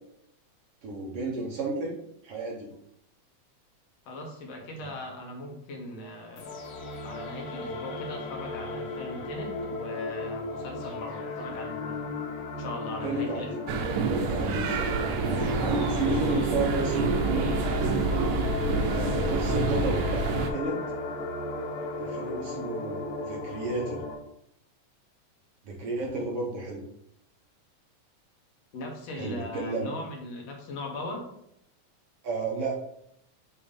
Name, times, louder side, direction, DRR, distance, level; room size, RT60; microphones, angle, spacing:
voice 1, 0.8-2.0 2.2-2.7 4.8-4.9 13.0-13.6 14.1-17.4 18.9-20.8 22.0-24.0 25.6-26.8 29.1-29.9 32.2-32.8, right 3 dB, 65° right, -1 dB, 1.7 m, -33 dB
voice 2, 4.1-6.6 7.0-12.0 12.6-13.8 28.7-31.2, left 2 dB, 65° left, 1 dB, 2.1 m, -39 dB
sound 1, 6.4-24.1, left 3 dB, 90° left, 2.4 m, -35 dB
sound 2, 13.7-20.5, right 4 dB, 85° right, 2.0 m, -27 dB
7.1 x 2.9 x 5.2 m, 0.76 s
omnidirectional pair, 3.3 m